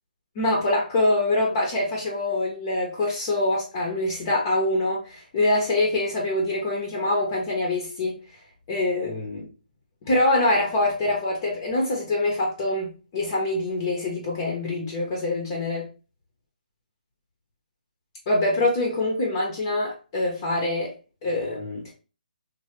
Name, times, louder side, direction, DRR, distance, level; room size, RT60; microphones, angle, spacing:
voice 1, 0.4-8.2 8.7-9.5 10.1-15.9 18.3-20.9 21.2-21.9, left 2 dB, 30° left, -1 dB, 0.6 m, -24 dB
3.2 x 2.1 x 2.9 m, 0.34 s
hypercardioid pair, 165°, 5 cm